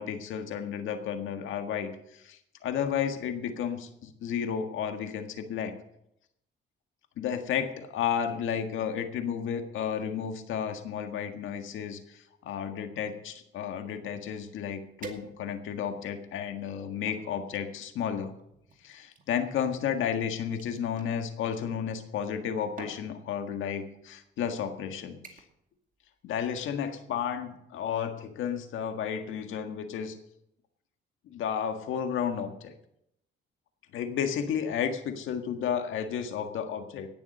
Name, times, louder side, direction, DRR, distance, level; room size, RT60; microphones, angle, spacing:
voice 1, 0.0-5.7 7.2-18.3 18.8-25.4 26.2-30.2 31.2-32.7 33.9-37.1, left 8 dB, 80° left, 7 dB, 1.7 m, -32 dB
sound 1, 15.0-15.8 16.4-17.3 18.2-21.1 22.2-22.4 22.8-23.1 24.0-24.1 24.5-24.8 25.2-25.6 26.0-26.3 26.7-26.8, right 4 dB, 40° right, 2.2 m, -48 dB
18.5 x 7.2 x 6.7 m, 0.80 s
cardioid pair, 90°, 20 cm